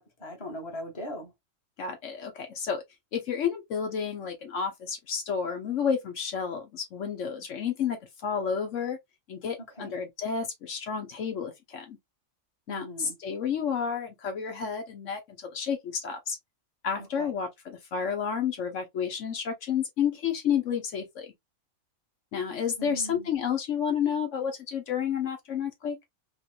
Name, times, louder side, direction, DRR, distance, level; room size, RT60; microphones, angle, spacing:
voice 1, 0.0-1.3 9.8-9.9 12.7-13.2 17.0-17.3 22.8-23.3, equal, 25° left, 1.1 m, -40 dB
voice 2, 1.8-2.8 3.1-8.0 8.2-9.0 9.3-12.0 12.7-16.4 16.8-21.3 22.3-26.0, left 7 dB, 70° left, 1.1 m, -31 dB
3.0 x 2.8 x 2.5 m
omnidirectional pair, 1.3 m